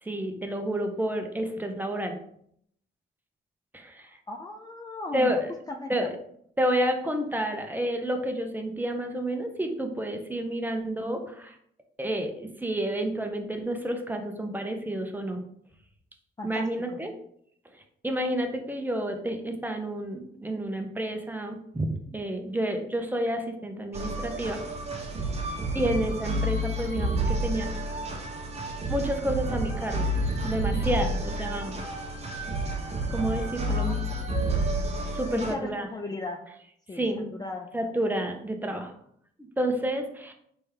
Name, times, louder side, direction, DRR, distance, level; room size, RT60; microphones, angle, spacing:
voice 1, 0.0-2.2 3.7-4.1 5.1-5.5 5.9-6.1 6.6-11.6 12.0-15.4 16.4-17.1 18.0-24.6 25.7-27.7 28.9-30.1 30.4-31.8 33.1-34.0 35.1-35.9 37.0-37.3 37.7-38.9 39.6-40.3, right 1 dB, 10° right, 4 dB, 0.8 m, -30 dB
voice 2, 4.1-5.3 5.7-6.2 16.4-17.0 33.7-34.1 35.3-36.4 36.9-37.7, left 3 dB, 20° left, 2 dB, 0.4 m, -37 dB
sound 1, 23.9-35.5, right 1 dB, 35° right, 1.0 m, -30 dB
4.2 x 3.4 x 3.5 m, 0.68 s
cardioid pair, 90°, 20 cm